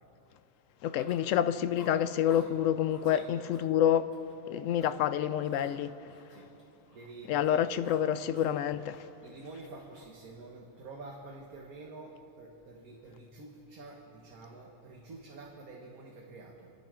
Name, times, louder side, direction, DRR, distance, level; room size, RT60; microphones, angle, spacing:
voice 1, 0.8-4.1 4.5-5.9 7.3-9.0, left 10 dB, 70° left, 0.9 m, -28 dB
Chewing mastication, 0.9-1.4 1.7-2.5 2.9-3.2 3.5-4.3 4.7-5.0 5.4-7.1 7.3-8.6 8.9-10.2, left 2 dB, 35° left, 4.9 m, -56 dB
voice 2, 6.9-7.7 9.2-16.7, right 3 dB, 80° right, 1.8 m, -48 dB
30.0 x 10.5 x 3.7 m
omnidirectional pair, 1.5 m